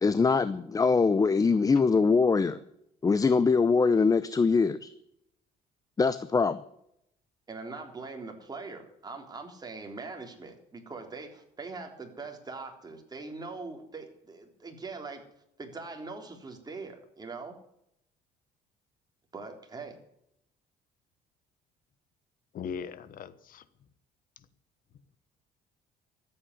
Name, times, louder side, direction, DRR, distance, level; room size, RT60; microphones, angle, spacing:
voice 1, 0.0-2.6 3.0-4.9 6.0-6.6, left 4 dB, 20° left, 0.6 m, -23 dB
voice 2, 7.5-15.2 15.6-17.6 19.3-20.0, right 3 dB, 25° right, 3.6 m, -42 dB
voice 3, 22.5-23.6, left 7 dB, 55° left, 1.3 m, -39 dB
14.0 x 8.8 x 9.6 m
cardioid pair, 110°, 17 cm